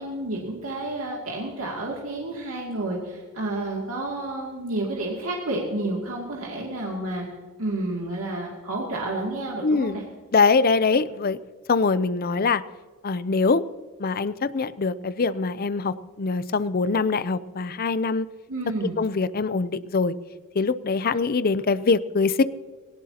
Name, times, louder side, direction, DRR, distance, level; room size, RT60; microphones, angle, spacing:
voice 1, 0.0-7.2 7.6-10.0 18.5-19.0, right 2 dB, 75° right, -2 dB, 2.5 m, -30 dB
voice 2, 9.6-10.0 10.3-11.4 11.7-12.6 13.0-13.6 14.0-18.3 19.0-20.1 20.5-22.4, left 4 dB, 45° left, 16 dB, 0.5 m, -23 dB
19.0 x 17.5 x 2.9 m, 1.5 s
head